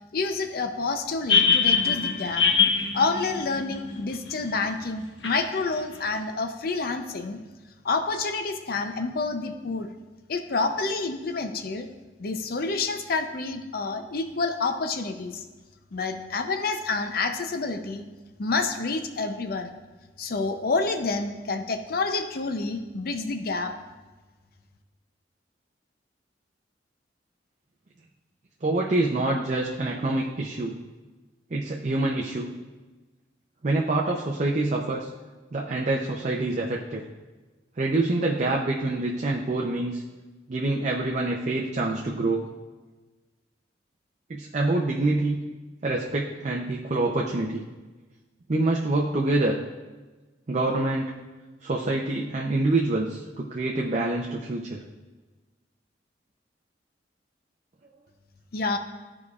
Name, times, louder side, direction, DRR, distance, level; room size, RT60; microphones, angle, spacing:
voice 1, 0.1-2.4 2.9-7.4 7.8-9.9 10.3-11.9 12.2-15.4 15.9-18.0 18.4-19.8 20.2-23.7 58.5-58.8, left 3 dB, 55° left, 7 dB, 0.5 m, -28 dB
sound 1, 1.3-4.3 5.2-5.3, left 6 dB, 80° left, 1.0 m, -22 dB
voice 2, 28.6-30.7 31.5-32.5 33.6-35.1 35.5-37.0 37.8-40.0 40.5-42.4 44.3-45.4 45.8-47.6 48.5-49.6 50.5-51.2 51.6-54.8, right 2 dB, 40° right, -2 dB, 0.5 m, -26 dB
13.0 x 4.8 x 2.4 m, 1.2 s
head